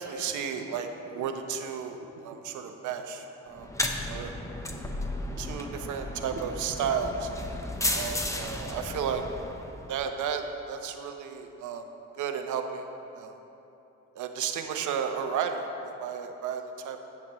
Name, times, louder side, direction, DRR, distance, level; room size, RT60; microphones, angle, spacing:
voice 1, 0.0-3.7 4.1-4.3 4.7-4.8 5.4-7.3 7.9-9.2 9.9-11.9 12.2-12.9 13.1-13.4 14.1-17.0, right 7 dB, 80° right, 6 dB, 0.8 m, -33 dB
sound 1, 3.5-9.9, left 1 dB, 10° left, 0.8 m, -34 dB
13.5 x 8.2 x 3.1 m, 3.0 s
cardioid pair, 90°, 30 cm